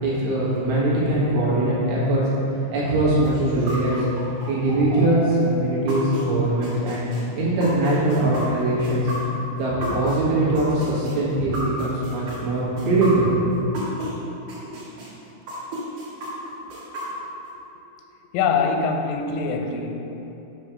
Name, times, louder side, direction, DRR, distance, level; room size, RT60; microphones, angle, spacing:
voice 1, 0.0-2.2 2.7-4.0 4.5-7.0 7.4-9.1 9.6-13.3, right 1 dB, 75° right, -8 dB, 4.0 m, -21 dB
sound 1, 3.2-14.1 14.5-17.5, equal, 60° right, 1.6 m, -33 dB
voice 2, 18.3-20.0, left 5 dB, 85° left, 4 dB, 3.1 m, -23 dB
9.4 x 3.2 x 6.1 m, 3.0 s
omnidirectional pair, 5.5 m